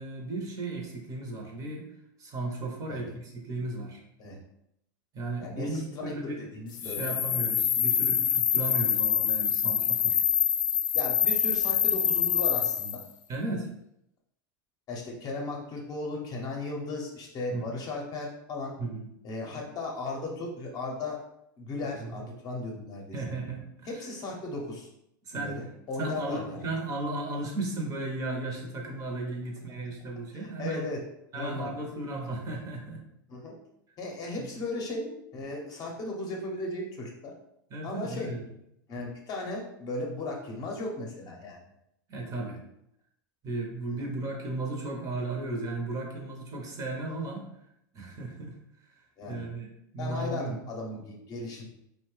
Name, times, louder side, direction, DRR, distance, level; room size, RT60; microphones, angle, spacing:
voice 1, 0.0-1.9 2.2-4.0 5.1-6.5 6.8-10.2 13.3-13.7 17.5-17.8 18.8-19.1 19.5-19.6 21.9-22.1 23.1-24.0 25.3-25.6 26.0-30.9 31.3-33.0 34.4-34.6 37.7-38.4 42.1-42.6 43.4-47.5 47.9-48.6 49.3-49.7 49.9-50.6, right 2 dB, 30° right, 0 dB, 0.7 m, -35 dB
voice 2, 5.4-7.1 10.9-13.0 14.9-18.7 19.2-21.2 21.6-23.0 23.8-24.9 25.3-26.7 30.3-31.0 31.4-31.7 33.3-33.5 34.0-37.3 37.8-38.3 38.9-41.6 43.9-44.1 49.2-49.4 50.0-51.7, left 2 dB, 35° left, 0 dB, 0.7 m, -36 dB
sound 1, 6.7-13.0, left 9 dB, 75° left, 0.4 m, -26 dB
2.7 x 2.1 x 3.1 m, 0.78 s
supercardioid pair, 115°, 11 cm